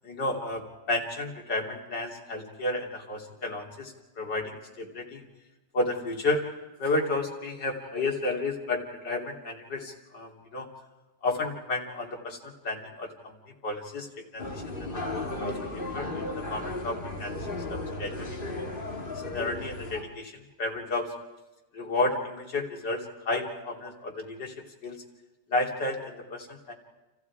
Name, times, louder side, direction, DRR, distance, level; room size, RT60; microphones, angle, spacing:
voice 1, 0.0-5.2 5.7-6.4 6.8-10.7 11.2-13.3 13.6-14.6 15.1-18.7 19.1-21.1 21.7-24.5 24.8-25.0 25.5-26.7, left 2 dB, 75° left, 0 dB, 3.8 m, -32 dB
sound 1, 14.4-20.0, left 2 dB, 30° left, 2.8 m, -35 dB
29.5 x 28.5 x 4.9 m, 1.1 s
omnidirectional pair, 1.9 m